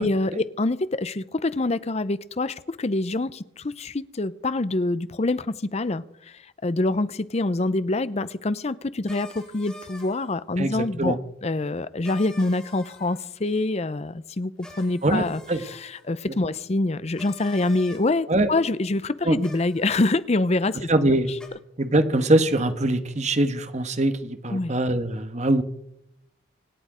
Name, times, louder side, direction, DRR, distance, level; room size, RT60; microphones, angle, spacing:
voice 1, 0.0-11.2 11.4-20.9 21.3-21.4 24.5-24.7, left 2 dB, 35° left, 0.6 m, -26 dB
sound 1, 9.1-10.4 12.0-13.2 14.6-16.0 17.1-18.0 19.4-20.1 21.4-21.5, left 1 dB, 5° left, 4.6 m, -46 dB
voice 2, 10.6-11.2 15.0-15.6 18.3-18.5 19.2-19.4 20.9-21.3 21.8-25.6, right 1 dB, 40° right, 1.3 m, -22 dB
26.0 x 8.8 x 5.0 m
head